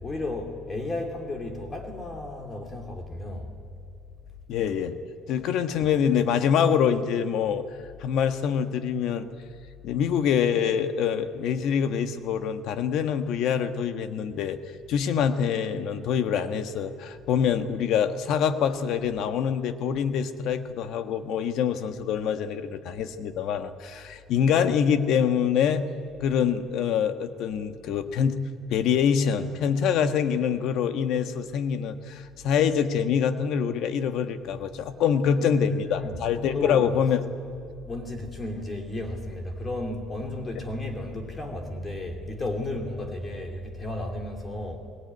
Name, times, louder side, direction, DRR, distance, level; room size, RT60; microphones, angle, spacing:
voice 1, 0.0-3.5 35.1-36.9 37.8-44.8, left 2 dB, 20° left, 3 dB, 2.7 m, -33 dB
voice 2, 4.5-5.0 5.3-7.6 8.0-9.3 9.8-14.6 14.9-25.9 26.2-28.4 28.7-37.2, left 7 dB, 60° left, 9 dB, 1.4 m, -25 dB
22.5 x 19.0 x 9.5 m, 2.3 s
cardioid pair, 150°, 0 cm